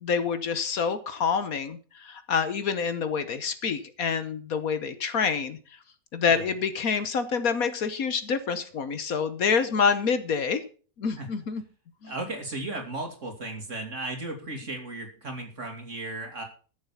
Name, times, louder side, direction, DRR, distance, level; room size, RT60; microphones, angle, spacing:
voice 1, 0.0-5.6 6.1-10.6 11.0-11.6 12.0-12.1, left 6 dB, 60° left, 12 dB, 1.5 m, -27 dB
voice 2, 12.0-16.4, right 2 dB, 50° right, 4 dB, 3.2 m, -35 dB
13.5 x 7.3 x 7.1 m, 0.39 s
omnidirectional pair, 1.7 m